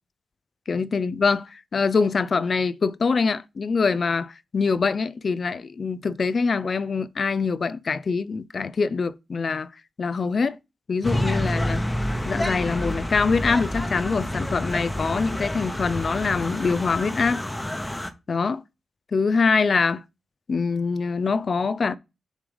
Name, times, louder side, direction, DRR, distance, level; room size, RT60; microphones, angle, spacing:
voice 1, 0.7-9.7 10.0-10.6 10.9-11.8 12.2-17.4 18.3-18.6 19.1-20.0 20.5-21.9, left 4 dB, 55° left, 0.5 m, -24 dB
sound 1, 11.0-18.1, left 1 dB, 15° left, 1.0 m, -28 dB
7.2 x 3.3 x 5.2 m
cardioid pair, 75°, 0 cm